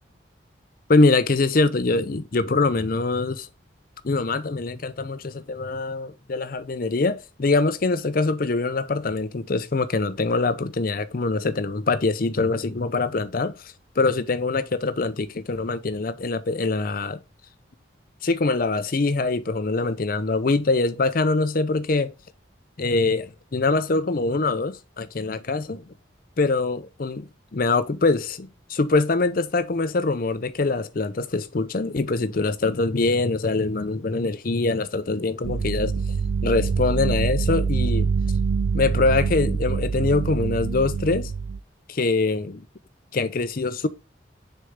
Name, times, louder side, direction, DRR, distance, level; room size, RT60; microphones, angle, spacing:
voice 1, 0.9-3.5 4.0-17.2 18.2-22.1 22.8-25.9 26.4-38.1 38.7-41.3 41.9-42.7 43.1-43.9, left 3 dB, 45° left, 0.6 m, -24 dB
sound 1, 35.4-41.6, right 5 dB, 80° right, 0.3 m, -25 dB
6.4 x 4.5 x 3.6 m
head